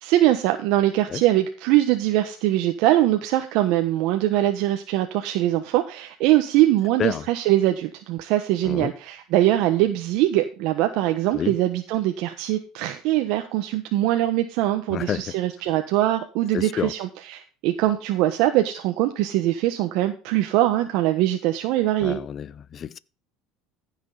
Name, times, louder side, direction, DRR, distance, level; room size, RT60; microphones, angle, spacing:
voice 1, 0.0-22.2, right 14 dB, 65° right, 1.1 m, -22 dB
voice 2, 14.9-15.3 16.5-16.9 22.0-23.0, left 8 dB, 30° left, 0.5 m, -29 dB
15.0 x 6.4 x 3.9 m
cardioid pair, 140°, 0 cm